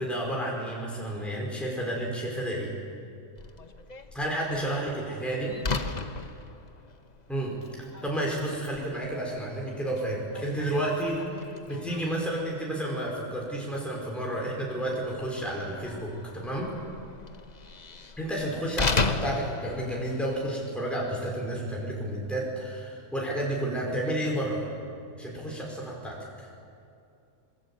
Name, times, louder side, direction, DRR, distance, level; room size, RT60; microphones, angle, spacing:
voice 1, 0.0-2.7 4.1-5.5 7.3-7.5 7.8-11.2 11.7-16.7 18.2-24.6 25.2-26.5, right 1 dB, ahead, -3 dB, 5.1 m, -31 dB
Slam, 3.4-20.5, left 4 dB, 35° left, 1.1 m, -37 dB
26.0 x 22.5 x 8.7 m, 2.6 s
omnidirectional pair, 1.4 m